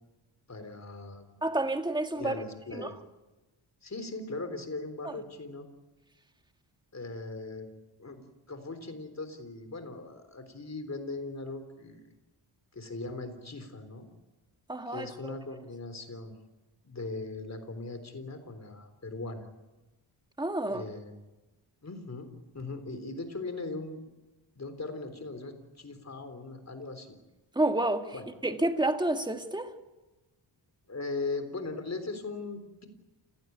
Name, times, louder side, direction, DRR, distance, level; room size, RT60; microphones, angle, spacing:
voice 1, 0.5-1.4 2.1-3.0 3.8-5.7 6.9-7.7 8.0-8.2 8.5-12.0 12.7-14.1 14.9-16.4 16.8-19.5 20.7-21.2 21.8-22.3 22.5-24.0 24.6-27.2 28.1-28.3 30.9-32.9, left 3 dB, 35° left, 3.8 m, -39 dB
voice 2, 1.4-2.4 2.7-2.9 5.0-5.2 14.7-15.3 20.4-20.8 27.6-28.1 28.4-29.7, right 1 dB, 10° right, 1.7 m, -29 dB
29.0 x 17.0 x 9.4 m
wide cardioid pair, 125°, 47 cm